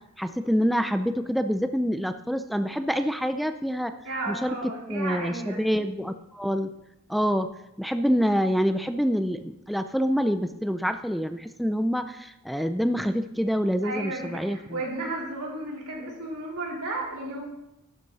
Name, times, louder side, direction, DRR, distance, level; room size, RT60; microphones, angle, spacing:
voice 1, 0.2-3.9 4.3-4.6 4.9-6.7 7.1-7.5 7.8-14.8, equal, ahead, 9 dB, 0.4 m, -26 dB
voice 2, 4.0-5.6 13.8-17.4, right 2 dB, 90° right, -3 dB, 3.9 m, -33 dB
12.0 x 10.5 x 4.1 m, 0.89 s
head